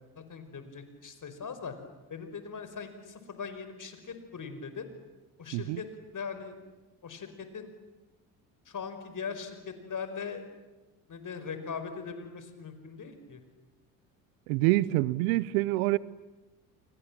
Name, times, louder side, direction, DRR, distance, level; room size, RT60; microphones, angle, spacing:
voice 1, 0.3-1.7 2.1-4.8 5.4-5.9 6.1-6.5 7.0-7.7 8.7-10.4 11.1-13.4, left 6 dB, 40° left, 5.3 m, -40 dB
voice 2, 14.5-16.0, right 18 dB, 80° right, 0.9 m, -26 dB
29.5 x 24.5 x 7.5 m
hypercardioid pair, 60°, 46 cm